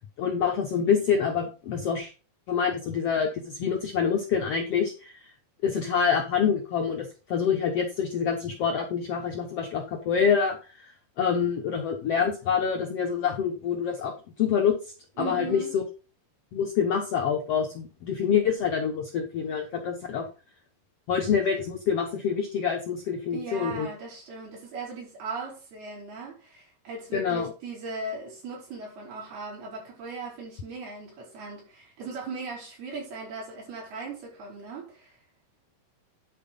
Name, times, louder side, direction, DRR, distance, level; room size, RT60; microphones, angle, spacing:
voice 1, 0.2-2.1 2.5-5.2 5.6-14.7 15.2-15.8 16.5-20.2 21.1-23.9 27.1-27.5, left 7 dB, 85° left, 1.3 m, -26 dB
voice 2, 15.2-15.7 23.3-35.2, right 3 dB, 90° right, 6.7 m, -38 dB
10.5 x 4.6 x 5.4 m
omnidirectional pair, 4.3 m